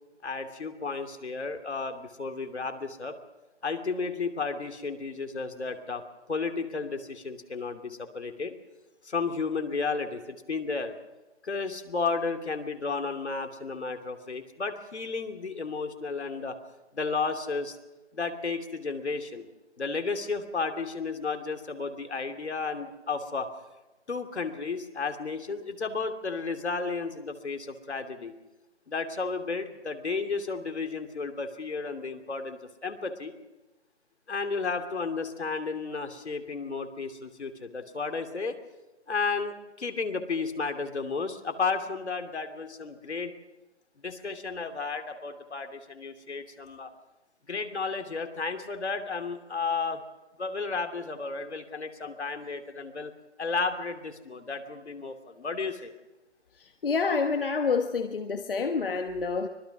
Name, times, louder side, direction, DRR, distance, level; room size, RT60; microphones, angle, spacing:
voice 1, 0.2-3.2 3.6-6.0 6.3-8.5 9.0-11.0 11.4-16.6 16.9-17.8 18.1-19.5 19.8-23.5 24.1-28.3 28.9-33.3 34.3-38.6 39.1-43.3 44.0-46.9 47.5-50.0 50.4-53.1 53.4-55.9, left 4 dB, 70° left, 7 dB, 2.9 m, -33 dB
voice 2, 56.5-59.5, left 4 dB, 50° left, 6 dB, 1.3 m, -28 dB
25.0 x 19.5 x 6.1 m, 1.0 s
figure-of-eight pair, 160°, 35 cm